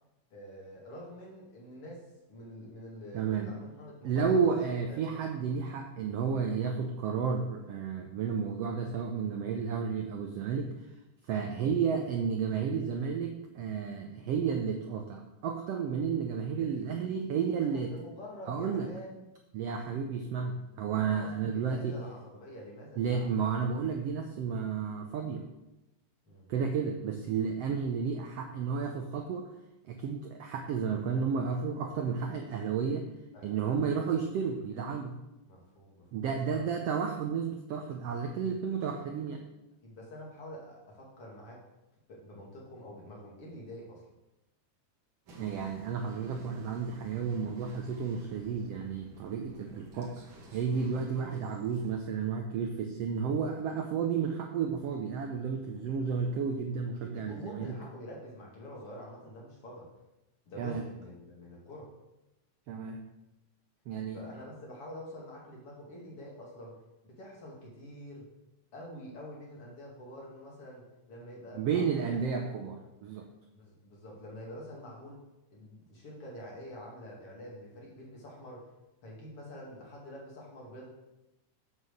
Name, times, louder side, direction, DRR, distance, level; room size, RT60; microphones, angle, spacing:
voice 1, 0.3-5.2 16.6-19.2 21.0-23.3 26.2-26.5 33.3-33.6 33.9-34.1 35.5-36.7 37.0-37.2 38.5-38.6 39.8-41.6 42.1-44.1 50.3-50.5 55.7-55.9 57.0-59.9 60.5-61.9 64.1-66.8 67.0-68.2 68.7-70.8 71.1-72.6 73.5-75.2 75.5-78.7 79.0-80.9, equal, 50° left, -3 dB, 3.0 m, -47 dB
voice 2, 3.1-3.5 4.0-10.7 11.3-17.9 18.5-18.9 19.5-22.0 23.0-25.4 26.5-29.5 29.8-33.0 33.4-35.2 36.1-39.4 45.4-57.7 60.6-60.8 62.7-63.0 63.9-64.2 71.5-73.3, right 6 dB, 75° right, 3 dB, 1.4 m, -32 dB
sound 1, 45.3-52.0, right 1 dB, 50° right, 1.9 m, -52 dB
7.4 x 6.4 x 6.5 m, 0.95 s
omnidirectional pair, 3.6 m